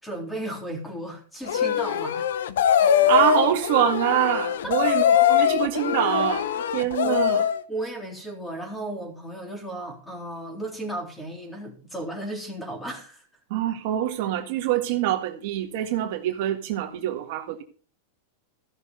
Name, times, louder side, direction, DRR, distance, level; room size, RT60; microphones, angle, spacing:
voice 1, 0.0-2.3 4.6-4.9 7.0-7.2 7.7-13.3, right 1 dB, 5° left, 3.6 m, -35 dB
sound 1, 1.5-7.6, left 9 dB, 80° left, 1.0 m, -22 dB
voice 2, 3.1-5.0 5.3-6.5 6.7-7.4 13.5-17.6, right 12 dB, 55° right, 1.7 m, -25 dB
15.0 x 6.5 x 5.5 m
supercardioid pair, 145°, 0 cm